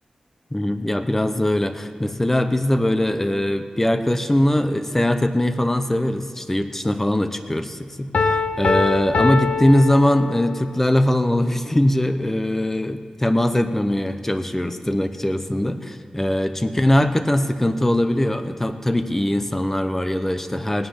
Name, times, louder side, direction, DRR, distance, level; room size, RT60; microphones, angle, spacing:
voice 1, 0.5-20.9, left 1 dB, 15° left, 9 dB, 0.8 m, -21 dB
Piano, 8.1-10.7, left 4 dB, 80° left, 0.8 m, -23 dB
17.0 x 10.0 x 5.7 m, 2.1 s
wide cardioid pair, 100°, 2 cm